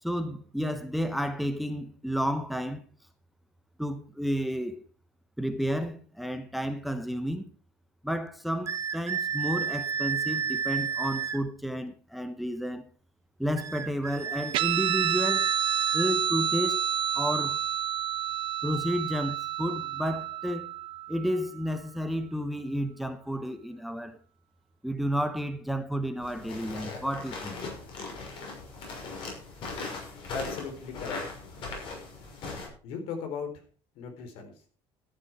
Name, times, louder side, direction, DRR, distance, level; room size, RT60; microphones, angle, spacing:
voice 1, 0.0-2.8 3.8-4.8 5.4-7.5 8.0-12.8 13.4-15.5 15.9-16.8 17.1-17.6 18.6-20.7 21.1-24.2 24.8-27.6, equal, ahead, 0.9 m, -31 dB
Sifflet train, 8.7-11.4 13.6-16.1, right 7 dB, 30° right, 0.9 m, -32 dB
Guitar, 14.5-21.5, right 9 dB, 60° right, 0.8 m, -29 dB
sound 1, 26.2-32.7, left 3 dB, 55° left, 6.5 m, -39 dB
voice 2, 30.3-31.2 32.8-33.5 33.9-34.5, left 5 dB, 75° left, 4.2 m, -36 dB
13.5 x 10.0 x 4.8 m
cardioid pair, 155°, 10 cm